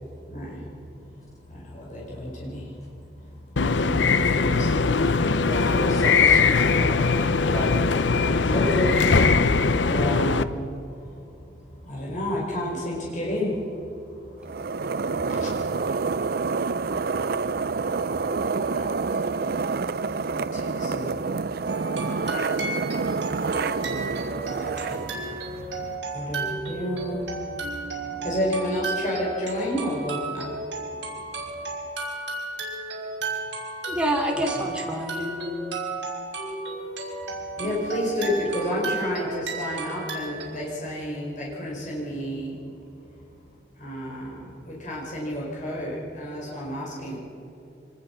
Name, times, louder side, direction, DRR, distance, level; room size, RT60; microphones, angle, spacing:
voice 1, 0.0-2.9 3.2-5.7 8.1-9.2 9.8-14.7 15.2-15.5 16.4-22.5 22.8-27.5 28.1-31.6 34.3-34.7 37.2-42.6 43.7-47.2, left 1 dB, 45° left, -3 dB, 5.0 m, -32 dB
sound 1, 3.6-10.4, left 4 dB, 85° left, 0.7 m, -21 dB
voice 2, 5.3-7.7, equal, 20° left, -2 dB, 5.3 m, -33 dB
sound 2, 14.4-26.0, right 4 dB, 55° right, 0.5 m, -28 dB
sound 3, 21.7-40.4, right 3 dB, 80° right, 5.4 m, -33 dB
voice 3, 33.9-35.8, equal, 5° right, 1 dB, 2.9 m, -28 dB
25.0 x 20.0 x 5.9 m, 2.8 s
head